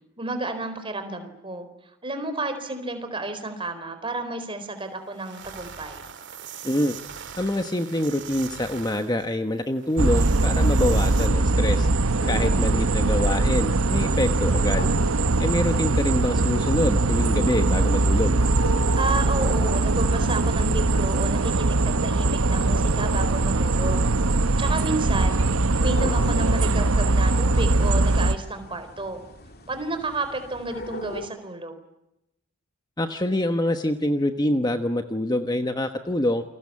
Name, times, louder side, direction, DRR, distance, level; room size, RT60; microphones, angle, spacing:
voice 1, 0.2-1.7 2.0-6.1 12.4-12.7 19.0-24.1 24.6-25.4 25.8-29.2 29.7-31.7, right 2 dB, 25° right, 8 dB, 4.3 m, -31 dB
sound 1, 4.8-4.9 5.1-11.3, right 7 dB, 55° right, 2.6 m, -41 dB
voice 2, 6.6-7.0 7.4-11.9 12.3-14.9 15.4-18.4 33.0-36.4, left 1 dB, 20° left, 7 dB, 1.2 m, -25 dB
sound 2, 10.0-28.3, right 2 dB, 75° right, 1.0 m, -21 dB
sound 3, 12.2-31.3, left 1 dB, 45° left, 3.1 m, -41 dB
29.0 x 22.0 x 8.6 m, 0.86 s
head